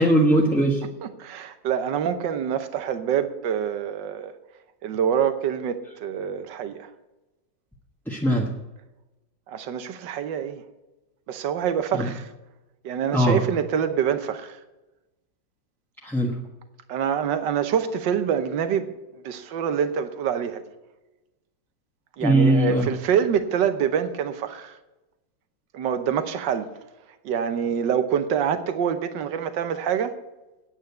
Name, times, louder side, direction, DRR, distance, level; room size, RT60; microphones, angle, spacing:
voice 1, 0.0-0.8 8.1-8.5 12.0-12.1 13.1-13.4 16.0-16.3 22.2-22.9, right 1 dB, ahead, 1.0 m, -20 dB
voice 2, 1.0-4.3 4.8-6.9 9.5-10.6 11.3-12.3 12.8-14.6 16.9-20.6 22.2-24.8 25.7-26.7 27.2-30.2, right 8 dB, 70° right, 1.6 m, -26 dB
9.2 x 8.8 x 8.2 m
omnidirectional pair, 2.0 m